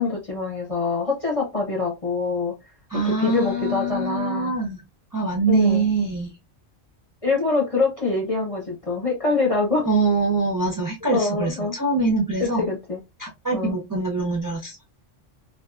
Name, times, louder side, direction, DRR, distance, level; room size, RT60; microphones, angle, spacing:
voice 1, 0.0-2.5 2.9-4.5 5.5-5.9 7.2-9.9 11.1-11.8 12.4-13.0 13.5-13.8, left 3 dB, 35° left, 0.8 m, -24 dB
voice 2, 2.9-4.8 5.1-6.3 9.8-12.7 13.2-14.8, right 3 dB, 20° right, 0.6 m, -24 dB
2.8 x 2.4 x 2.3 m
omnidirectional pair, 1.2 m